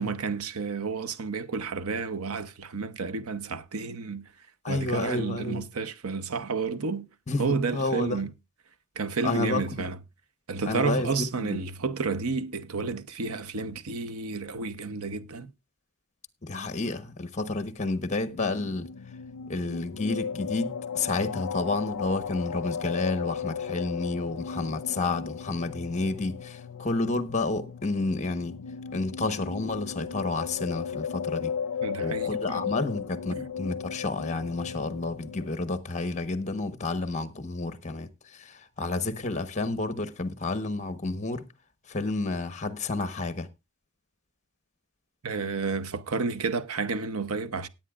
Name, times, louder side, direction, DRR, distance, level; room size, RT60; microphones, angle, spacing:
voice 1, 0.0-4.3 4.7-7.1 7.4-8.3 9.0-10.0 10.5-15.5 31.8-32.7 33.3-33.5 45.2-47.7, right 4 dB, 85° right, 0.9 m, -31 dB
voice 2, 4.6-5.6 7.3-8.2 9.2-9.6 10.7-11.7 16.4-18.9 19.5-28.5 28.9-31.5 32.0-41.5 41.9-43.5, left 3 dB, 35° left, 1.1 m, -30 dB
sound 1, 18.2-35.5, left 7 dB, 80° left, 0.5 m, -36 dB
18.0 x 8.8 x 2.4 m
head